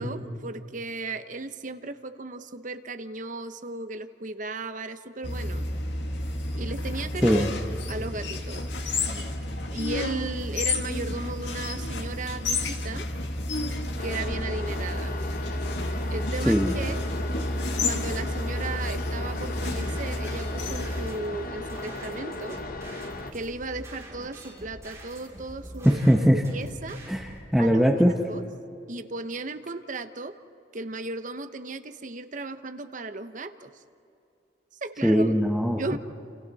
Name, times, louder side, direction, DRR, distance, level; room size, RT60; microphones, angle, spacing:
voice 1, 0.0-5.6 6.5-7.4 7.9-8.6 9.7-13.1 14.0-15.2 16.1-17.0 17.8-22.6 23.3-26.0 26.3-27.0 27.6-27.9 28.3-28.4 28.9-30.3 30.7-33.7 34.8-35.3 35.8-36.0, right 3 dB, 45° right, 9 dB, 1.0 m, -35 dB
sound 1, 5.2-21.1, left 2 dB, 85° left, 1.8 m, -31 dB
sound 2, 14.0-23.3, left 2 dB, 55° left, 1.4 m, -37 dB
sound 3, 19.3-27.4, right 1 dB, 20° right, 5.9 m, -45 dB
voice 2, 25.8-26.4 27.1-28.1 35.0-36.0, equal, ahead, 1 dB, 1.1 m, -21 dB
30.0 x 28.5 x 4.2 m, 2.6 s
head